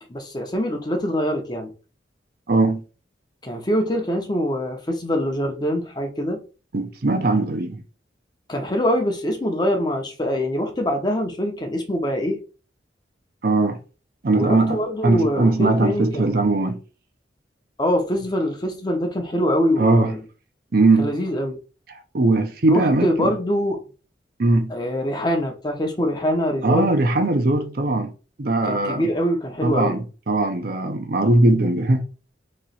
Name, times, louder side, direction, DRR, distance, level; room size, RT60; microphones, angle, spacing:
voice 1, 0.1-1.7 3.4-6.4 8.5-12.4 14.3-16.4 17.8-20.2 21.0-21.6 22.7-23.8 24.7-26.9 28.7-30.0, equal, 25° left, 0.7 m, -24 dB
voice 2, 2.5-2.8 6.7-7.8 13.4-13.8 14.2-16.8 19.8-20.1 20.7-21.1 22.1-23.3 24.4-24.7 26.6-28.1 28.4-29.1 29.6-32.0, right 2 dB, 55° right, 0.7 m, -20 dB
3.1 x 2.9 x 4.1 m
head